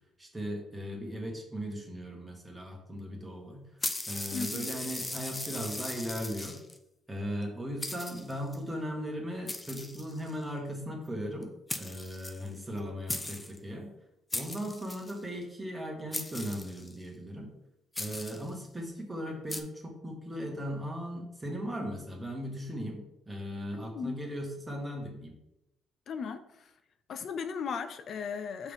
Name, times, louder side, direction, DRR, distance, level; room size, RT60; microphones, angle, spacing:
voice 1, 0.2-3.6 4.1-6.6 7.1-11.5 11.7-13.9 14.3-17.5 18.0-25.3, equal, 10° right, 1 dB, 1.8 m, -38 dB
sound 1, 3.8-6.8 7.4-7.5 7.8-8.6 9.5-10.4 11.4-11.5 11.7-12.8 13.1-13.6 14.3-15.2 16.1-17.0 17.9-18.5 19.5-19.6, left 2 dB, 15° left, 0.7 m, -38 dB
voice 2, 4.3-4.7 23.7-24.2 26.1-26.7 27.1-28.7, left 6 dB, 60° left, 10 dB, 0.4 m, -37 dB
5.7 x 3.6 x 5.6 m, 0.85 s
cardioid pair, 85°, 0 cm